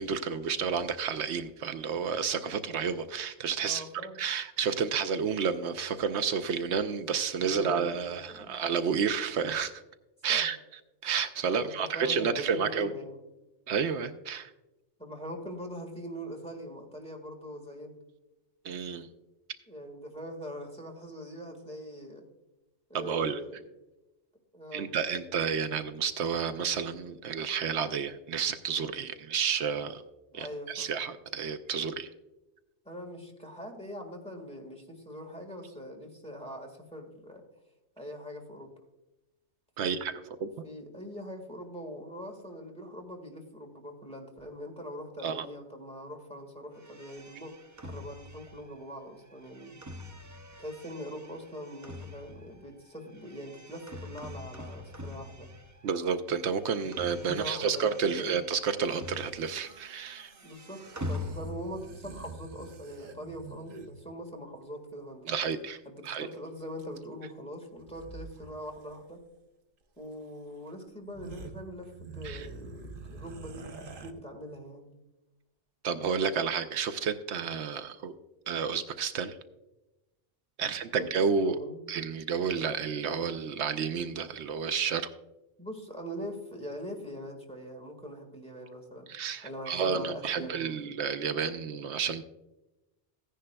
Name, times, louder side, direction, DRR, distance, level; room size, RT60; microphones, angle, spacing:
voice 1, 0.0-3.8 4.2-9.8 10.2-10.6 11.0-12.9 13.7-14.5 18.6-19.1 22.9-23.4 24.7-30.0 30.3-32.1 39.8-40.5 45.2-45.5 55.8-60.3 65.3-65.8 66.0-66.3 72.2-72.5 75.8-78.1 78.5-79.4 80.6-81.6 81.9-85.1 89.1-92.2, right 6 dB, 80° right, 10 dB, 0.9 m, -30 dB
voice 2, 3.6-4.2 7.4-8.6 10.3-10.4 11.5-13.2 15.0-18.0 19.7-22.3 22.9-23.6 24.5-24.9 30.3-30.9 32.8-37.4 38.0-38.7 39.8-40.0 40.6-47.5 47.8-49.8 50.6-55.5 56.8-58.4 60.4-60.8 61.1-65.3 65.8-69.2 70.0-75.0 80.6-80.7 81.0-81.1 81.4-81.8 85.6-89.1 89.4-90.8, equal, 5° left, 2 dB, 1.6 m, -42 dB
sound 1, 46.8-56.1 56.3-59.8 60.0-61.9, left 2 dB, 25° right, 0.4 m, -44 dB
sound 2, 59.3-64.0 65.5-65.6 65.8-66.4 66.8-67.3 67.8-68.5 68.8-69.0 70.1-70.2 70.7-70.8 71.0-74.1, right 3 dB, 55° right, 0.9 m, -47 dB
15.0 x 10.0 x 2.2 m, 1.0 s
omnidirectional pair, 1.2 m